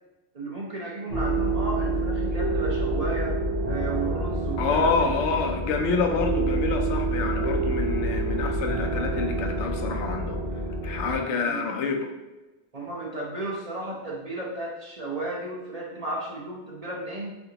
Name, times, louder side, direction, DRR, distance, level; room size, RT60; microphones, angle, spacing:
voice 1, 0.3-3.4 3.7-5.1 7.4-7.6 11.2-11.6 12.7-17.4, right 2 dB, 40° right, -3 dB, 0.7 m, -34 dB
sound 1, 1.1-11.2, right 2 dB, 80° right, 2.0 m, -27 dB
voice 2, 4.6-10.4 10.8-12.1, left 4 dB, 85° left, 3 dB, 0.9 m, -27 dB
4.3 x 2.8 x 2.8 m, 1.1 s
omnidirectional pair, 1.2 m